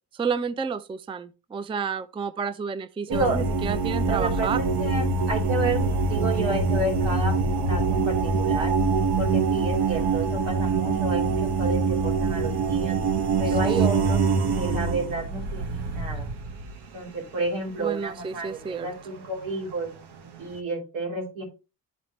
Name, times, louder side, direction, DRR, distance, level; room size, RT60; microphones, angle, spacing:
voice 1, 0.1-4.6 13.6-13.9 17.8-18.9, right 5 dB, 10° right, 0.4 m, -30 dB
sound 1, 3.1-17.0 18.8-18.9 19.5-19.9 20.1-20.5, right 4 dB, 60° right, 1.2 m, -24 dB
voice 2, 3.1-3.4 4.0-5.8 6.1-7.3 7.7-8.7 9.2-13.0 13.4-14.2 14.5-16.3 16.9-19.9 20.4-21.4, right 2 dB, 80° right, 3.3 m, -30 dB
11.0 x 4.3 x 3.0 m
supercardioid pair, 70°, 45 cm